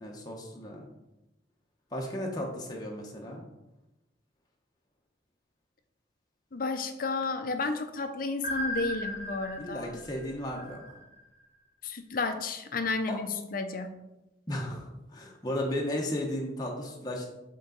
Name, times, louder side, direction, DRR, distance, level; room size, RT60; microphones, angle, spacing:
voice 1, 0.0-0.9 1.9-3.4 9.6-10.8 13.1-13.2 14.5-17.3, left 1 dB, 20° left, -1 dB, 0.9 m, -34 dB
voice 2, 6.5-10.0 11.8-13.9, left 3 dB, 50° left, 7 dB, 0.6 m, -32 dB
sound 1, 8.4-11.4, equal, 20° right, 1.9 m, -37 dB
8.0 x 3.8 x 3.9 m, 0.96 s
head